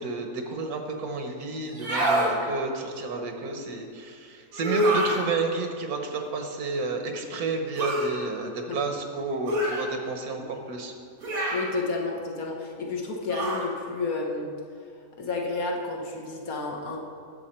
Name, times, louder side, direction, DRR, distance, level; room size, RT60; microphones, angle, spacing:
voice 1, 0.0-10.9, right 3 dB, 90° right, 4 dB, 1.5 m, -31 dB
sound 1, 1.7-2.3 4.5-5.2 7.8-8.1 9.5-9.8 11.2-11.7 13.3-13.7, right 1 dB, 75° right, 2.7 m, -25 dB
voice 2, 11.5-14.5 15.2-17.0, left 3 dB, 75° left, 0 dB, 1.7 m, -31 dB
10.5 x 7.2 x 4.3 m, 2.3 s
omnidirectional pair, 1.5 m